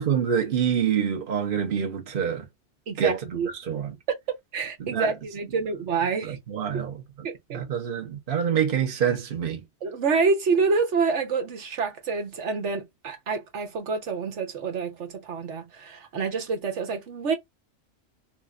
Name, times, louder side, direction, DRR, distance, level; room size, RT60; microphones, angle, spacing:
voice 1, 0.0-2.4 3.0-4.0 4.8-5.1 6.2-7.0 7.5-9.6, right 8 dB, 50° right, 1.0 m, -26 dB
voice 2, 2.9-3.5 4.1-4.2 4.5-6.4 6.7-6.8 7.2-7.6 9.8-17.3, right 4 dB, 80° right, 1.3 m, -27 dB
3.6 x 3.1 x 2.4 m
omnidirectional pair, 1.2 m